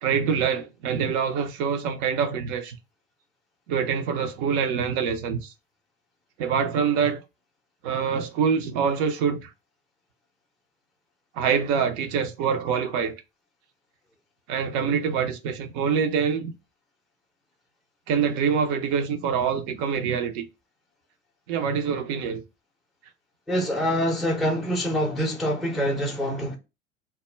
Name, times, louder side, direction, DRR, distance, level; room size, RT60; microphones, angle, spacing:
voice 1, 0.0-2.8 3.7-5.5 6.4-7.2 7.8-9.5 11.4-13.2 14.5-16.5 18.1-20.5 21.5-22.4, right 6 dB, 50° right, 0.6 m, -25 dB
voice 2, 23.5-26.5, equal, ahead, 0.5 m, -25 dB
2.2 x 2.0 x 3.1 m
figure-of-eight pair, 75°, 38 cm